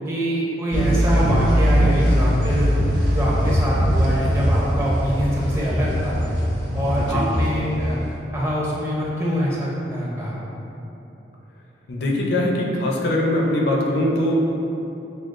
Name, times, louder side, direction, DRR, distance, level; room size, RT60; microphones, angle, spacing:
voice 1, 0.1-2.7 3.1-6.2 6.7-8.0 8.3-10.4, equal, 15° right, -6 dB, 0.6 m, -24 dB
sound 1, 0.7-8.1, equal, 85° right, 0.9 m, -21 dB
voice 2, 11.9-14.4, left 1 dB, 60° left, -1 dB, 0.5 m, -21 dB
6.2 x 2.3 x 2.5 m, 3.0 s
head